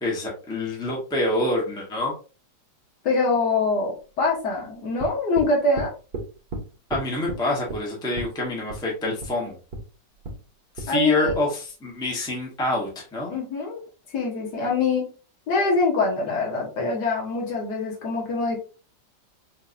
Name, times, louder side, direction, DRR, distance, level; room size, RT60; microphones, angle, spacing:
voice 1, 0.0-2.1 6.9-9.6 10.7-13.4, left 2 dB, 5° left, -3 dB, 0.8 m, -26 dB
voice 2, 3.0-5.9 10.9-11.3 13.3-13.8 14.1-15.0 15.5-18.6, left 3 dB, 65° left, -1 dB, 1.6 m, -24 dB
sound 1, 5.0-5.5 5.8-6.3 6.5-6.6 6.9-7.4 7.7-7.8 8.2-8.3 8.7-8.8 9.2-9.3 9.7-9.8 10.2-10.4 10.8-10.9 11.3-11.4, right 2 dB, 60° right, 1.5 m, -32 dB
4.5 x 2.6 x 2.5 m, 0.35 s
omnidirectional pair, 1.9 m